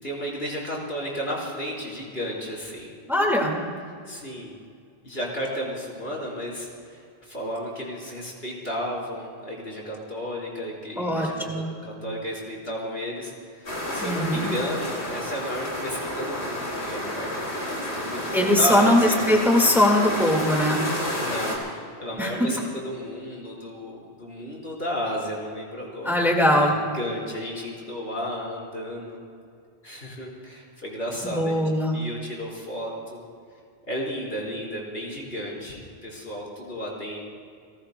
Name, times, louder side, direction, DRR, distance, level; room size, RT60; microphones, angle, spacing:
voice 1, 0.0-2.9 4.1-4.5 5.0-17.3 17.8-19.2 21.0-29.2 29.8-31.6 31.9-33.2 33.9-37.2, equal, 65° left, -4 dB, 4.7 m, -33 dB
voice 2, 3.1-3.6 11.0-11.7 14.0-14.5 18.3-20.8 22.2-22.3 26.1-26.7 31.2-32.0, left 1 dB, ahead, 1 dB, 1.8 m, -21 dB
sound 1, 13.6-21.6, left 1 dB, 85° left, 3.6 m, -30 dB
29.5 x 19.0 x 2.2 m, 2.2 s
omnidirectional pair, 1.1 m